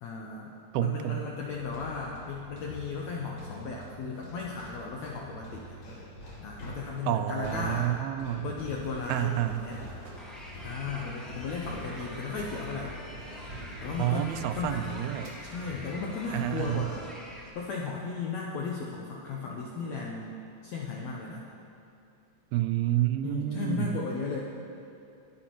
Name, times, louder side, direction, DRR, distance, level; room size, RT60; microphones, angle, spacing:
voice 1, 0.0-5.8 6.4-7.9 8.4-9.8 10.6-13.0 13.8-14.9 15.4-17.0 17.5-21.5 23.2-24.4, left 4 dB, 75° left, -2 dB, 1.6 m, -35 dB
voice 2, 0.7-1.2 7.1-8.5 9.1-9.7 14.0-15.3 16.3-16.9 22.5-24.0, right 13 dB, 90° right, 10 dB, 2.5 m, -29 dB
sound 1, 1.4-17.4, equal, 45° left, 3.1 m, -45 dB
sound 2, 8.8-16.8, right 1 dB, 50° right, 2.2 m, -50 dB
sound 3, 10.2-17.5, equal, ahead, 0.9 m, -46 dB
20.0 x 11.0 x 3.1 m, 2.8 s
omnidirectional pair, 4.2 m